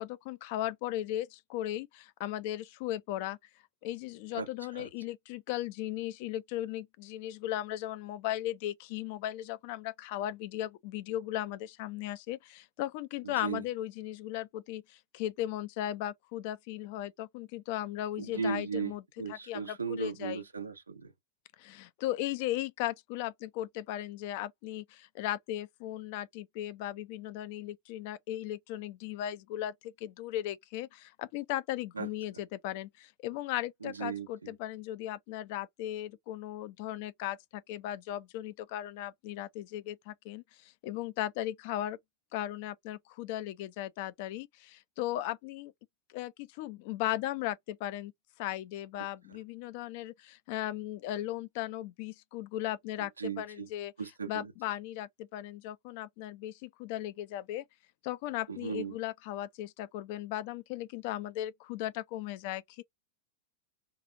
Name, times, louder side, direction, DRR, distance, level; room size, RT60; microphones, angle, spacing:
voice 1, 0.0-3.4 3.8-19.0 19.3-20.4 21.6-42.0 42.3-45.7 46.1-48.1 48.4-53.9 54.3-57.6 58.0-62.8, left 13 dB, 50° left, 0.4 m, -37 dB
voice 2, 4.3-4.9 13.2-13.6 18.2-21.1 31.9-32.4 33.8-34.5 49.0-49.4 53.0-53.7 54.0-54.5 58.5-59.0, right 6 dB, 75° right, 0.6 m, -37 dB
2.8 x 2.4 x 3.7 m
figure-of-eight pair, 90°, 0 cm